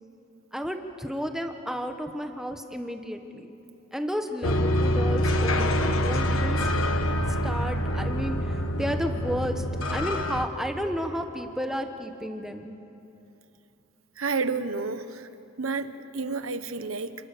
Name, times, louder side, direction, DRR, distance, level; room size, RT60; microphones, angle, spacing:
voice 1, 0.5-3.5 3.9-6.7 7.4-12.7, equal, ahead, 5 dB, 1.4 m, -32 dB
sound 1, 4.4-10.5, equal, 85° left, 1.4 m, -25 dB
voice 2, 14.2-15.3 15.6-17.2, right 4 dB, 90° right, 11 dB, 1.2 m, -30 dB
28.5 x 27.0 x 6.9 m, 2.8 s
head